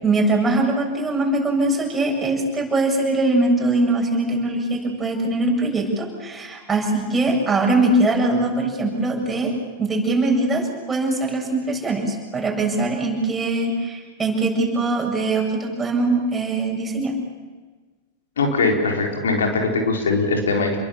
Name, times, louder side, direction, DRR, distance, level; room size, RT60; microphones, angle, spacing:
voice 1, 0.0-9.5 9.8-17.1, right 2 dB, 15° right, 0 dB, 7.6 m, -22 dB
voice 2, 18.4-20.8, left 3 dB, 75° left, 2 dB, 4.1 m, -21 dB
29.5 x 22.0 x 7.2 m, 1.4 s
hypercardioid pair, 95°, 0 cm